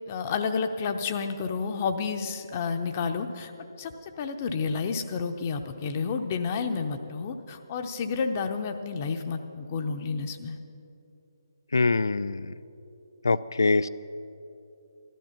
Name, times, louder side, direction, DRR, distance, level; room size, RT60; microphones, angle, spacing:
voice 1, 0.1-3.5 3.8-3.9 4.2-10.6, left 5 dB, 30° left, 7 dB, 0.7 m, -30 dB
voice 2, 11.7-12.5 13.2-13.9, left 3 dB, 65° left, 16 dB, 0.4 m, -24 dB
13.5 x 12.5 x 5.8 m, 2.8 s
figure-of-eight pair, 140°, 2 cm